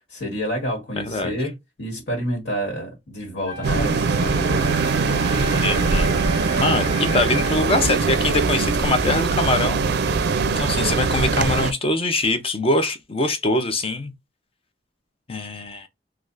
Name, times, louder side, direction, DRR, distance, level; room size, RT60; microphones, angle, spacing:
voice 1, 0.1-4.7, equal, 70° left, 1.5 m, -29 dB
voice 2, 1.0-1.3 5.6-6.1 6.6-10.3 10.6-14.1 15.3-15.9, left 2 dB, 30° left, 0.6 m, -23 dB
Wind instrument woodwind instrument, 3.5-7.9, right 1 dB, 20° right, 0.7 m, -34 dB
sound 1, 3.6-11.7, right 4 dB, 65° right, 0.4 m, -21 dB
3.3 x 2.4 x 2.5 m
head